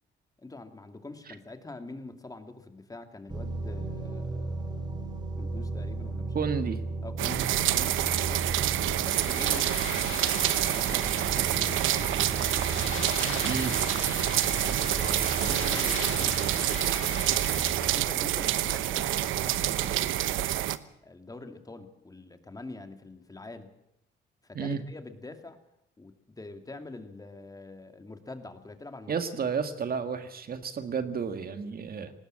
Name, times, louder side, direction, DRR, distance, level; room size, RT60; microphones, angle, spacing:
voice 1, 0.4-6.5 7.0-12.6 14.6-20.5 21.0-23.7 24.4-25.6 26.0-29.2, left 2 dB, 20° left, 7 dB, 2.4 m, -45 dB
sound 1, 3.3-17.9, right 3 dB, 20° right, 3.2 m, -36 dB
voice 2, 6.3-6.8 13.4-13.8 24.5-24.8 29.1-32.1, right 6 dB, 50° right, 9 dB, 1.8 m, -31 dB
sound 2, 7.2-20.8, right 13 dB, 85° right, 0.9 m, -27 dB
sound 3, 9.1-17.7, left 12 dB, 80° left, 1.2 m, -39 dB
19.5 x 17.5 x 7.7 m, 0.81 s
cardioid pair, 90°, 20 cm